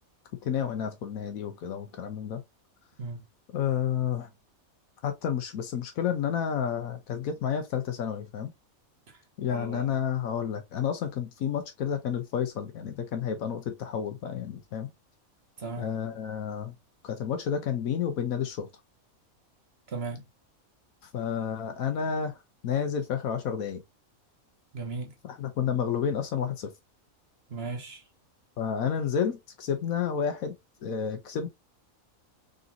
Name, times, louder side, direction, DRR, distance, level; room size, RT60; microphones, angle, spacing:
voice 1, 0.4-2.4 3.5-4.3 5.0-8.5 9.4-14.9 15.8-16.7 17.0-18.7 21.1-22.4 22.6-23.8 25.2-26.7 28.6-30.5 30.8-31.5, left 8 dB, 75° left, 1.2 m, -30 dB
voice 2, 9.5-10.0 15.6-15.9 19.9-20.2 24.7-25.1 27.5-28.0, right 4 dB, 50° right, 1.2 m, -36 dB
3.9 x 3.8 x 2.6 m
omnidirectional pair, 1.5 m